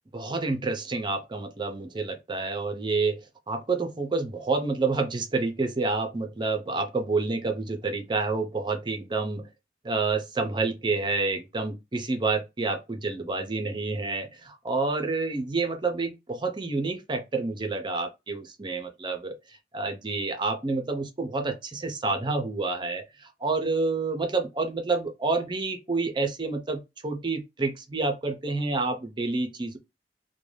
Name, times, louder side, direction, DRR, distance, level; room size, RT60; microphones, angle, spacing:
voice 1, 0.1-3.2 3.5-9.5 9.8-19.3 19.7-29.8, right 3 dB, 25° right, 0.5 m, -28 dB
2.5 x 2.1 x 3.1 m
head